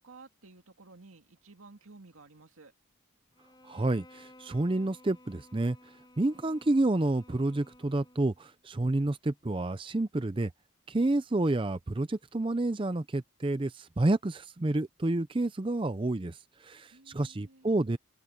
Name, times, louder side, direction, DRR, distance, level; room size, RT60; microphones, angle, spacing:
voice 1, 0.0-2.7 16.9-17.7, right 3 dB, 80° right, 2.2 m, -54 dB
Bowed string instrument, 3.4-8.5, left 1 dB, 20° left, 6.6 m, -56 dB
voice 2, 3.6-5.8 6.2-10.5 10.9-18.0, right 2 dB, 25° right, 0.5 m, -29 dB
head